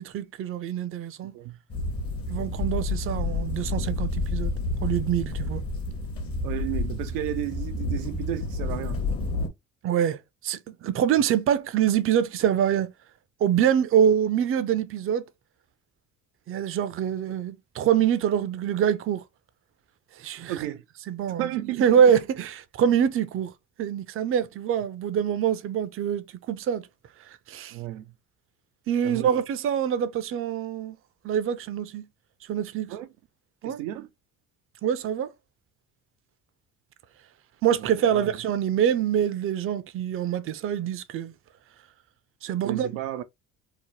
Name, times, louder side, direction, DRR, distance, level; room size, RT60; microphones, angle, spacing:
voice 1, 0.0-1.3 2.3-4.5 4.8-5.6 9.8-10.2 10.4-12.9 13.4-15.3 16.5-19.2 20.2-20.7 21.1-21.5 21.8-23.5 23.8-26.9 27.5-27.8 28.9-31.0 31.2-32.1 32.5-32.9 33.6-33.8 34.8-35.3 37.6-41.3 42.4-42.9, right 9 dB, 35° right, 0.5 m, -25 dB
voice 2, 1.2-1.6 6.4-9.1 20.5-20.8 21.4-22.1 27.7-28.1 29.0-29.3 32.9-33.1 33.6-34.1 37.8-38.4 42.6-43.2, right 14 dB, 90° right, 0.5 m, -33 dB
sound 1, 1.7-9.5, left 2 dB, 35° left, 0.9 m, -29 dB
2.9 x 2.0 x 3.0 m
supercardioid pair, 75°, 38 cm